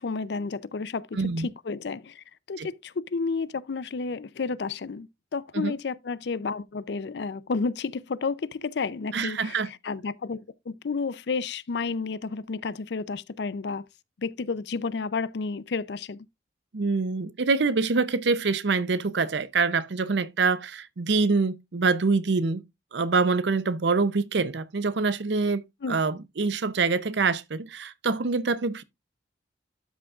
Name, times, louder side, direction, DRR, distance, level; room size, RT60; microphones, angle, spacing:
voice 1, 0.0-13.8 14.2-16.3 25.8-26.0, left 4 dB, 65° left, 0.5 m, -31 dB
voice 2, 1.1-1.5 2.6-2.7 5.5-5.7 9.1-9.7 16.7-22.6 22.9-28.8, right 4 dB, 70° right, 0.6 m, -25 dB
12.5 x 6.1 x 2.4 m
head